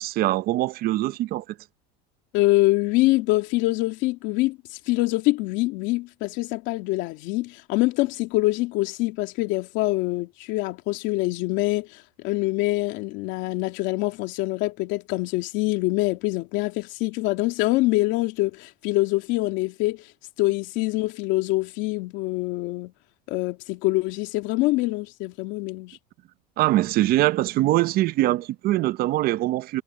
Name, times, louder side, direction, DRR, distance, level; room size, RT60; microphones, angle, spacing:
voice 1, 0.0-1.4 26.6-29.8, right 16 dB, 45° right, 0.7 m, -23 dB
voice 2, 2.3-20.1 20.4-22.9 23.3-26.0, left 20 dB, 65° left, 2.5 m, -25 dB
cardioid pair, 140°, 21 cm